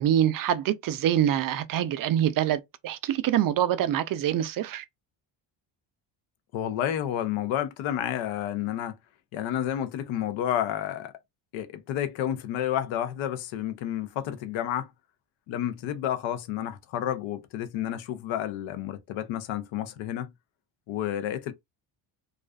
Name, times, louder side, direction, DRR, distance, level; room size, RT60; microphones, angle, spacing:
voice 1, 0.0-4.8, right 11 dB, 45° right, 0.5 m, -25 dB
voice 2, 6.5-8.9 9.3-11.1 11.5-14.9 15.5-20.3 20.9-21.5, left 11 dB, 70° left, 0.7 m, -30 dB
2.4 x 2.4 x 2.3 m
supercardioid pair, 85°, 49 cm